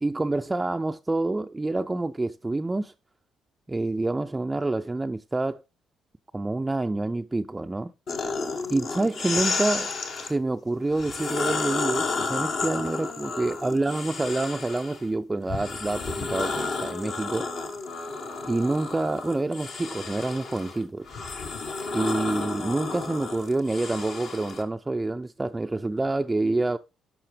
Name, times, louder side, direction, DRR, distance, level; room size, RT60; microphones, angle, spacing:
voice 1, 0.0-2.9 3.7-5.6 6.3-7.9 8.7-9.9 10.2-17.5 18.4-21.1 21.9-26.8, right 2 dB, 20° right, 0.4 m, -27 dB
sound 1, 8.1-10.3 10.9-15.0 15.5-24.6, left 4 dB, 65° left, 1.4 m, -32 dB
12.0 x 5.7 x 3.3 m
hypercardioid pair, 50°, 0 cm